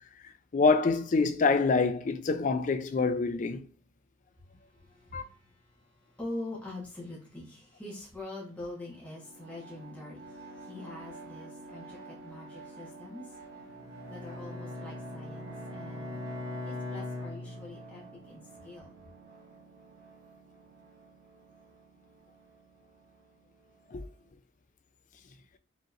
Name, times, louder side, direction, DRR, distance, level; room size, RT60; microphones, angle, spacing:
voice 1, 0.5-3.6 5.1-5.2 23.9-24.0, left 4 dB, 40° left, 0.3 m, -26 dB
voice 2, 4.3-13.4 14.1-16.2 16.6-19.0, left 2 dB, 5° left, 1.1 m, -44 dB
sound 1, 8.8-24.3, right 3 dB, 55° right, 1.4 m, -49 dB
Bowed string instrument, 13.8-18.1, left 2 dB, 15° right, 0.9 m, -41 dB
5.1 x 2.9 x 2.5 m
head